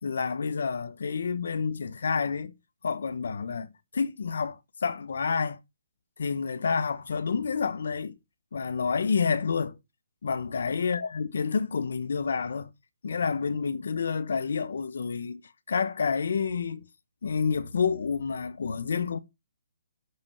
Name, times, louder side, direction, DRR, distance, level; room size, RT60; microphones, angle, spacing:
voice 1, 0.0-2.5 2.8-5.6 6.2-8.1 8.5-9.8 10.2-12.7 13.0-15.4 15.7-16.8 17.2-19.2, left 5 dB, 55° left, 1.1 m, -29 dB
8.2 x 5.4 x 6.4 m
hypercardioid pair, 180°, 0 cm